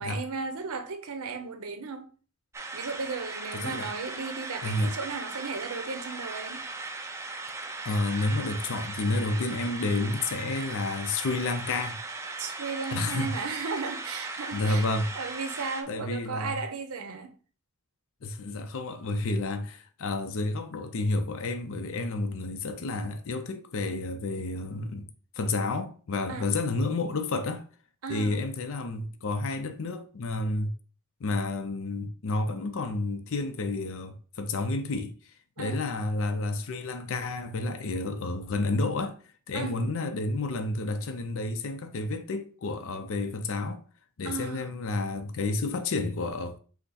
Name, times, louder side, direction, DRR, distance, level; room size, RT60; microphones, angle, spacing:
voice 1, 0.0-2.1 2.7-6.6 12.4-14.9 15.2-17.3 26.3-26.5 28.0-28.4 35.6-35.8 39.5-39.8 44.2-44.7, right 4 dB, 75° right, 0.7 m, -35 dB
sound 1, 2.5-15.8, right 3 dB, 10° right, 0.4 m, -38 dB
voice 2, 3.5-3.9 4.6-5.0 7.8-12.0 12.9-13.5 14.5-15.1 15.9-16.6 18.2-25.1 25.4-27.6 28.1-30.7 31.2-35.1 35.6-39.2 39.5-43.8 44.2-46.6, left 2 dB, 60° left, 0.5 m, -30 dB
5.7 x 2.1 x 4.1 m
head